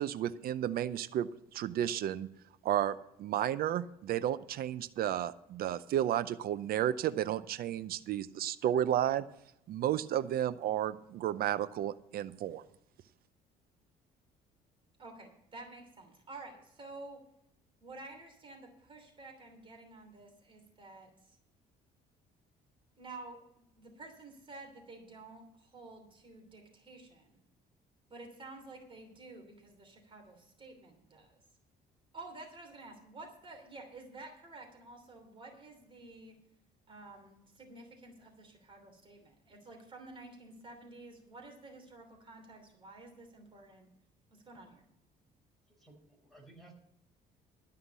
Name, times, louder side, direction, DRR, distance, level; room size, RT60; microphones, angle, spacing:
voice 1, 0.0-2.3 2.6-9.2 9.7-12.6, right 11 dB, 65° right, 14 dB, 0.6 m, -32 dB
voice 2, 15.0-17.2 17.8-21.4 23.0-27.4 28.1-31.4 32.1-36.4 36.9-43.9 44.3-44.8, right 2 dB, 30° right, 3 dB, 3.0 m, -51 dB
voice 3, 45.7-46.7, right 2 dB, ahead, 0 dB, 4.8 m, -57 dB
13.0 x 5.7 x 8.1 m, 0.80 s
cardioid pair, 110°, 17 cm